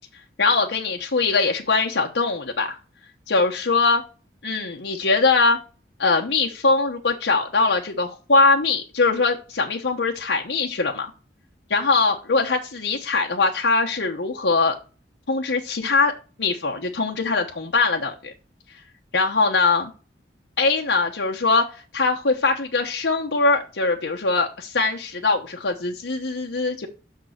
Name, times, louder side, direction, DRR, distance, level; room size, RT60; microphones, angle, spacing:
voice 1, 0.4-2.8 3.3-4.0 4.4-5.6 6.0-11.1 11.7-14.8 15.3-16.1 16.4-18.3 19.1-19.9 20.6-21.7 21.9-26.9, left 3 dB, 90° left, 1 dB, 1.1 m, -22 dB
6.7 x 6.3 x 6.4 m, 0.35 s
head